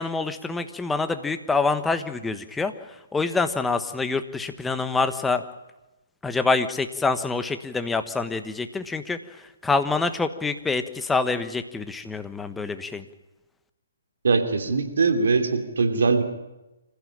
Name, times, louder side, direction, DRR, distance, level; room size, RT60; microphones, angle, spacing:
voice 1, 0.0-2.7 3.1-5.4 6.2-9.2 9.6-13.0, left 3 dB, 5° left, 9 dB, 1.3 m, -26 dB
voice 2, 14.2-16.2, right 4 dB, 65° right, 6 dB, 2.8 m, -21 dB
26.0 x 15.5 x 8.8 m, 1.0 s
figure-of-eight pair, 135°, 0 cm